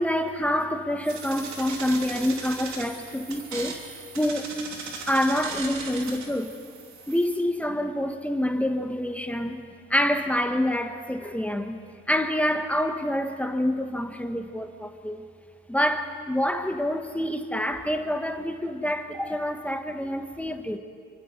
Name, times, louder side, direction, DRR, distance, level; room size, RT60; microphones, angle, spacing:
voice 1, 0.0-3.8 4.1-4.5 5.1-6.6 7.1-9.6 9.9-11.8 12.1-15.2 15.7-20.8, left 1 dB, 5° left, 1.5 m, -27 dB
sound 1, 1.0-7.4, right 4 dB, 65° right, 3.3 m, -38 dB
27.5 x 24.5 x 4.7 m
cardioid pair, 90°, 30 cm